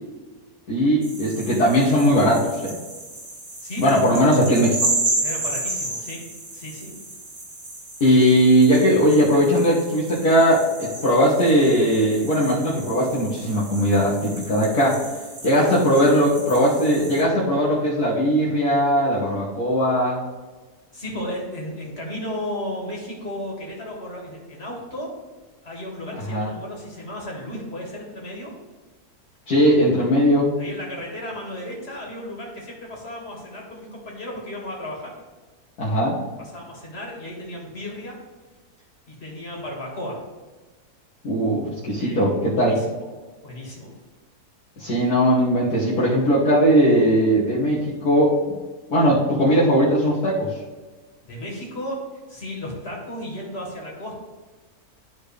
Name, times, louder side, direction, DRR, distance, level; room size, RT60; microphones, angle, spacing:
voice 1, 0.7-2.7 3.8-4.8 8.0-15.0 15.4-20.2 26.3-26.5 29.5-30.5 35.8-36.2 41.2-42.8 44.8-48.3 48.9-50.6, equal, 80° left, -8 dB, 2.0 m, -19 dB
sound 1, 1.0-17.2, right 2 dB, 85° right, 3.0 m, -32 dB
voice 2, 3.6-4.0 5.2-6.2 6.5-6.9 20.9-25.1 25.6-28.5 30.6-35.1 36.4-38.2 39.1-40.2 42.0-42.2 42.5-43.1 43.4-44.0 51.2-54.1, left 1 dB, 40° left, -3 dB, 2.4 m, -34 dB
12.5 x 4.3 x 3.4 m, 1.3 s
omnidirectional pair, 1.6 m